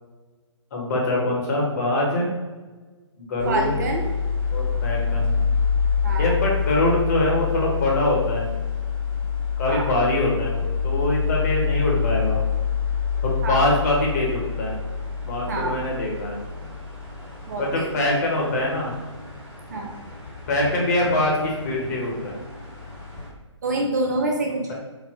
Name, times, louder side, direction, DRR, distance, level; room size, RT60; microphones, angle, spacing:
voice 1, 0.7-2.3 3.2-3.8 4.5-5.4 6.2-8.5 9.6-12.4 13.2-14.8 15.2-16.4 17.6-18.9 20.5-22.4, left 1 dB, 35° left, -2 dB, 1.1 m, -24 dB
sound 1, 3.4-23.3, left 6 dB, 10° right, 1.1 m, -27 dB
voice 2, 3.5-4.1 6.0-6.3 9.7-9.9 13.4-13.7 15.5-15.8 17.5-17.9 19.7-19.9 23.6-24.7, right 2 dB, 35° right, 1 dB, 0.5 m, -26 dB
4.0 x 2.1 x 4.1 m, 1.3 s
figure-of-eight pair, 135°, 16 cm